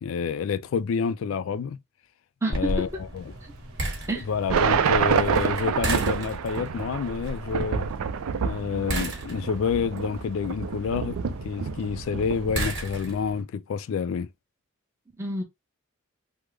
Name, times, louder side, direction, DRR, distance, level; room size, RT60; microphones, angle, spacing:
voice 1, 0.0-1.8 2.5-2.9 3.1-3.3 4.2-7.9 8.4-14.3, left 6 dB, 75° left, 0.3 m, -28 dB
voice 2, 2.4-3.0 4.1-4.3 15.2-15.4, right 1 dB, 15° right, 0.7 m, -29 dB
sound 1, 2.5-13.4, right 1 dB, 55° right, 1.1 m, -35 dB
sound 2, 4.5-12.6, right 7 dB, 90° right, 0.4 m, -28 dB
3.4 x 2.0 x 3.2 m
head